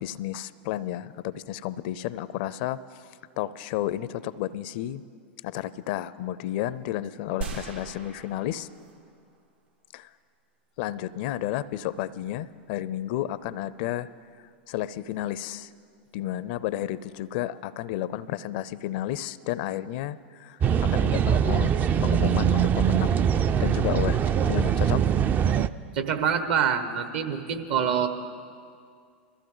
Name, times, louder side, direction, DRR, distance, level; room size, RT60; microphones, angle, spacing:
voice 1, 0.0-3.1 3.4-5.0 5.4-8.7 9.9-10.1 10.8-14.1 14.7-15.7 16.1-21.7 22.0-23.2 23.6-25.0, left 13 dB, 60° left, 18 dB, 0.5 m, -32 dB
sound 1, 7.4-9.7, right 5 dB, 80° right, 2.0 m, -39 dB
sound 2, 20.6-25.7, right 8 dB, 30° right, 0.4 m, -22 dB
voice 2, 25.9-28.1, right 7 dB, 60° right, 7 dB, 1.3 m, -25 dB
22.0 x 14.5 x 3.9 m, 2.2 s
hypercardioid pair, 105°, 6 cm